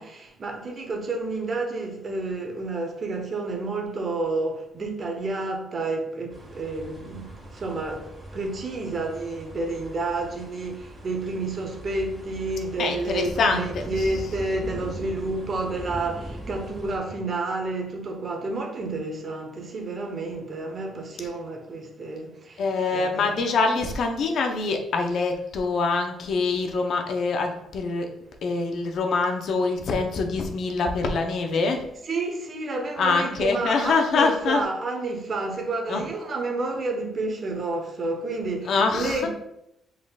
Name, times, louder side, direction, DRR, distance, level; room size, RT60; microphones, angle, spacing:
voice 1, 0.0-8.1 8.3-22.6 22.9-23.3 32.1-39.3, right 3 dB, 45° right, 0.9 m, -30 dB
sound 1, 6.3-17.0, right 1 dB, 10° right, 1.6 m, -40 dB
voice 2, 12.8-14.3 22.6-28.1 28.4-31.8 33.0-34.7 35.9-36.1 38.6-39.3, left 4 dB, 65° left, 0.7 m, -25 dB
5.1 x 3.8 x 2.3 m
cardioid pair, 90°, 0 cm